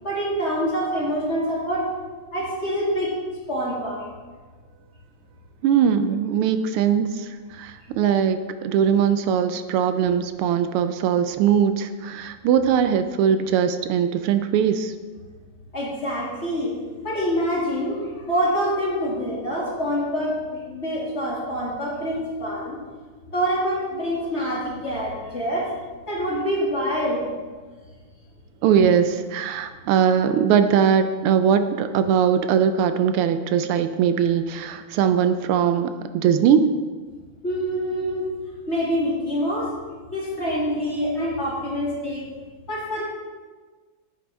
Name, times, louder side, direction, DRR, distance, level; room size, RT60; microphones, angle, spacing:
voice 1, 0.0-1.9 2.3-3.1 3.5-4.1 15.7-16.7 17.0-22.8 23.3-25.7 26.1-27.2 37.4-38.3 38.7-39.7 40.1-42.3 42.7-43.0, equal, 30° left, -5 dB, 2.4 m, -26 dB
voice 2, 5.6-7.3 7.6-14.9 28.6-36.7, right 8 dB, 80° right, 9 dB, 1.5 m, -20 dB
10.5 x 9.5 x 3.4 m, 1.4 s
omnidirectional pair, 2.4 m